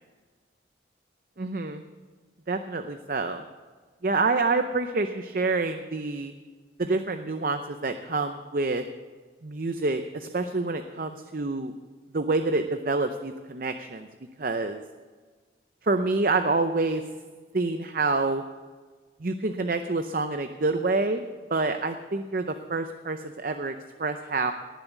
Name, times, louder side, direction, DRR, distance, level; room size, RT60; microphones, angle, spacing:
voice 1, 1.4-1.8 2.5-3.4 4.0-6.3 6.8-8.8 9.4-11.7 12.1-14.1 14.4-14.8 15.8-17.0 17.5-18.4 19.2-21.2 21.5-23.7 24.0-24.5, right 3 dB, 50° right, 8 dB, 0.6 m, -27 dB
19.0 x 7.2 x 8.2 m, 1.4 s
head